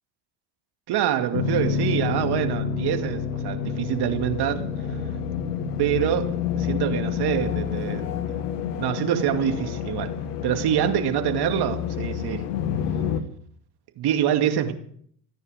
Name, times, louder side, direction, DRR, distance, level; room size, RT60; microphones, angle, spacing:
voice 1, 0.9-4.7 5.8-8.3 8.8-10.1 10.4-12.4 14.0-14.7, right 10 dB, 50° right, 2.5 m, -25 dB
sound 1, 1.3-13.2, left 8 dB, 75° left, 1.9 m, -28 dB
28.0 x 9.7 x 5.1 m
hypercardioid pair, 70°, 49 cm